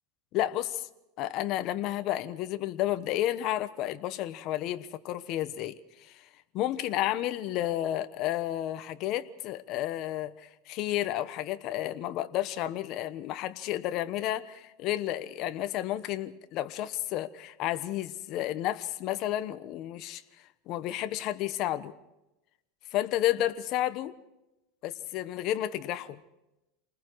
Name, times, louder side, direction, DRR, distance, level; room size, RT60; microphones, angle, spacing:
voice 1, 0.3-0.9 1.2-6.3 6.5-20.2 20.7-21.9 22.9-24.1 24.8-26.2, left 13 dB, 45° left, 11 dB, 1.1 m, -31 dB
28.5 x 20.0 x 4.8 m, 0.96 s
supercardioid pair, 150°, 0 cm